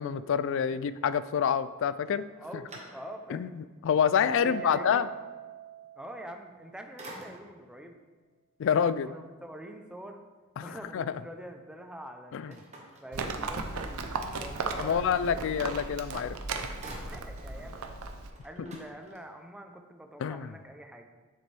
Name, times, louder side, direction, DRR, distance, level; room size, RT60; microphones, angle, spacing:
voice 1, 0.0-2.2 3.3-5.1 8.6-9.1 10.6-11.0 12.3-12.5 14.8-16.4 20.2-20.5, left 7 dB, 60° left, 15 dB, 0.3 m, -27 dB
sound 1, 2.0-3.5 4.0-4.1 6.3-6.6 7.0-7.7 12.5-13.8 15.9-16.0 16.3-17.6 17.9-18.0 18.3-19.6, right 1 dB, 30° right, 1.2 m, -49 dB
voice 2, 2.4-3.4 4.3-5.1 6.0-8.0 8.6-10.2 10.6-12.6 13.0-15.5 17.1-18.0 18.4-21.0, right 1 dB, 5° right, 4 dB, 0.5 m, -45 dB
Keyboard (musical), 4.3-6.8, right 9 dB, 60° right, 1.0 m, -42 dB
Livestock farm animals working animals, 13.1-18.3, right 3 dB, 85° right, 0.7 m, -36 dB
7.7 x 6.6 x 3.3 m, 1.4 s
head